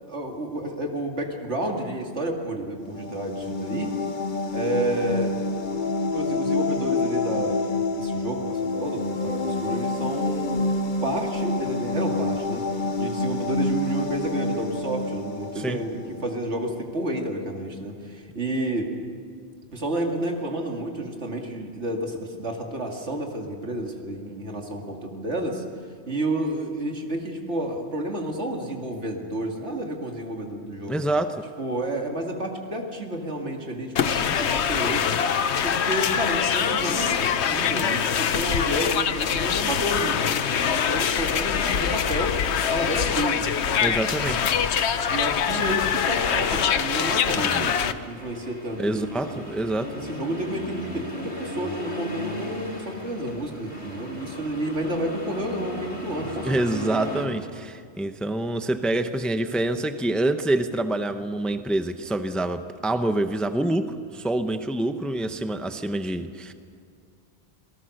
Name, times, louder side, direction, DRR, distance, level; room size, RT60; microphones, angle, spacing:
voice 1, 0.1-4.0 4.5-5.3 6.1-7.6 8.0-10.7 11.0-12.7 13.0-18.9 19.7-25.6 26.1-31.0 31.6-35.2 35.6-42.4 42.7-44.0 45.1-49.4 49.9-57.2, right 1 dB, 85° right, 1 dB, 2.7 m, -30 dB
sound 1, 2.8-16.4, left 2 dB, 50° left, 1.1 m, -27 dB
voice 2, 30.9-31.4 34.2-34.4 43.8-44.5 47.5-47.6 48.8-49.9 56.4-66.5, right 1 dB, ahead, 8 dB, 0.7 m, -26 dB
sound 2, 34.0-47.9, left 8 dB, 75° left, 1.1 m, -24 dB
Accelerating revving vroom, 43.8-57.3, left 1 dB, 25° left, 4.1 m, -38 dB
27.0 x 19.0 x 6.6 m, 2.2 s
omnidirectional pair, 1.1 m